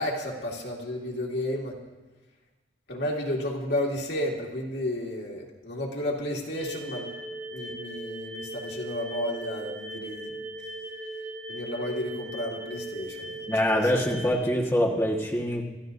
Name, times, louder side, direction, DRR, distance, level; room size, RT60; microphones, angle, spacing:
voice 1, 0.0-1.8 2.9-7.1 7.5-10.4 11.5-13.8, left 1 dB, 70° left, -1 dB, 2.2 m, -32 dB
sound 1, 6.6-14.3, right 1 dB, 80° right, 4.1 m, -38 dB
voice 2, 13.5-15.6, equal, 15° left, -2 dB, 1.5 m, -24 dB
27.5 x 14.0 x 2.7 m, 1.2 s
head